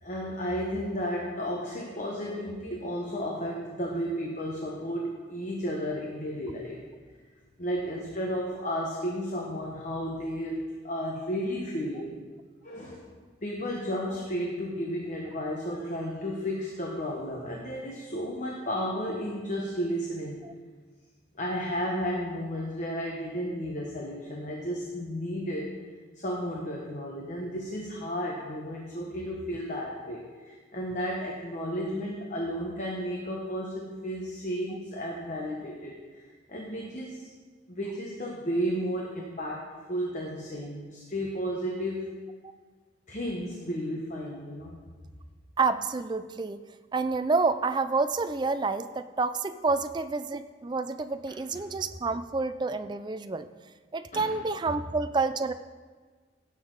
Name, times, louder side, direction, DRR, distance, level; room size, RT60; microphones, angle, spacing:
voice 1, 0.0-6.8 7.6-12.2 12.6-13.1 13.4-20.4 21.4-25.7 26.2-36.2 36.5-37.3 37.7-42.1 43.1-44.8 51.3-51.6 54.1-54.4, equal, 35° left, -1 dB, 1.1 m, -33 dB
voice 2, 45.6-46.6 46.9-53.5 53.9-55.5, right 4 dB, 20° right, 10 dB, 0.3 m, -28 dB
16.5 x 7.0 x 3.9 m, 1.5 s
head